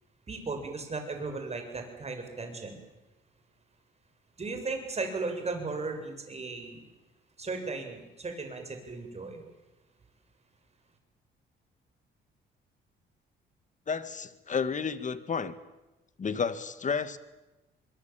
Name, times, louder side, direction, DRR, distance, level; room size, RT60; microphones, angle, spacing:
voice 1, 0.3-2.8 4.4-6.8 7.4-9.4, right 3 dB, 30° right, 5 dB, 7.6 m, -36 dB
voice 2, 13.9-15.5 16.2-17.2, left 6 dB, 40° left, 13 dB, 2.0 m, -31 dB
24.5 x 23.0 x 8.9 m, 1.1 s
cardioid pair, 90°, 20 cm